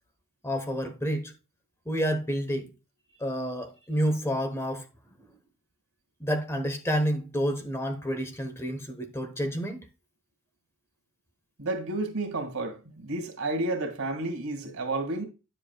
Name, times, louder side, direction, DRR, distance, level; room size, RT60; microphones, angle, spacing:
voice 1, 0.4-1.3 1.9-2.7 3.2-4.9 6.2-9.8, equal, 10° left, 1.1 m, -29 dB
voice 2, 11.6-15.2, right 2 dB, 90° right, 2.0 m, -31 dB
10.0 x 7.5 x 2.3 m
head